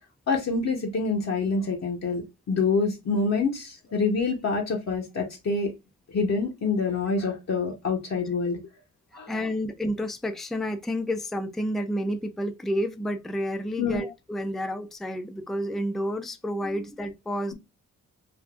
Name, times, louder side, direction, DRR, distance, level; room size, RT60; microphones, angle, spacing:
voice 1, 0.3-5.7 6.1-8.6 9.1-9.4 13.8-14.0 16.6-16.8, left 4 dB, 55° left, 0.8 m, -26 dB
voice 2, 9.3-17.5, equal, ahead, 0.4 m, -30 dB
3.4 x 2.5 x 2.3 m
cardioid pair, 70°, 32 cm